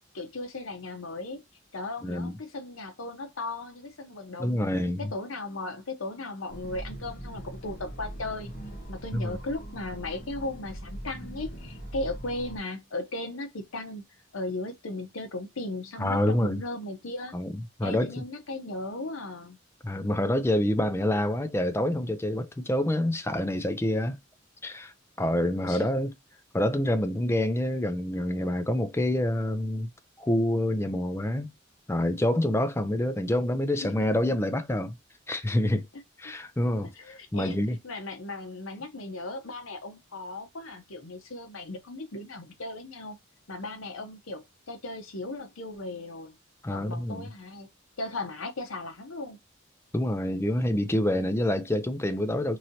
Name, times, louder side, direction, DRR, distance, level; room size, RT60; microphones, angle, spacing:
voice 1, 0.1-1.4 1.7-4.6 5.0-8.5 8.9-14.0 14.3-17.4 17.8-19.6 25.7-25.9 33.8-33.9 35.9-36.3 37.0-37.6 37.8-43.2 43.5-46.3 46.7-47.7 48.0-49.4, left 2 dB, 80° left, 0.9 m, -37 dB
voice 2, 2.0-2.3 4.4-5.1 9.1-9.3 16.0-16.6 17.3-18.2 19.8-24.2 24.6-24.9 25.2-26.1 26.5-29.9 30.2-31.5 31.9-35.0 35.3-35.8 36.2-36.9 37.3-37.8 46.6-47.3 49.9-52.6, left 1 dB, 10° left, 0.4 m, -27 dB
sound 1, 6.5-12.6, right 1 dB, 40° left, 0.9 m, -41 dB
3.0 x 2.8 x 2.6 m
head